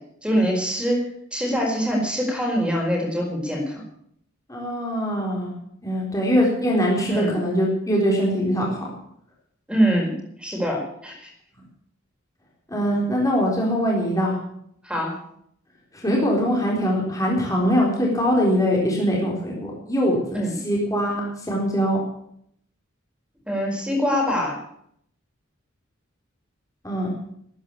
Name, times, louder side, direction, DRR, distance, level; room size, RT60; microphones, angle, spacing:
voice 1, 0.2-1.0 1.3-3.8 7.1-7.3 9.7-10.1 10.4-11.3 14.8-15.1 20.3-20.5 23.5-24.6, equal, 5° right, 0 dB, 4.8 m, -23 dB
voice 2, 4.5-5.5 5.8-8.9 12.7-14.4 15.9-22.0 26.8-27.1, equal, 15° left, -3 dB, 3.9 m, -22 dB
13.5 x 10.0 x 8.4 m, 0.70 s
head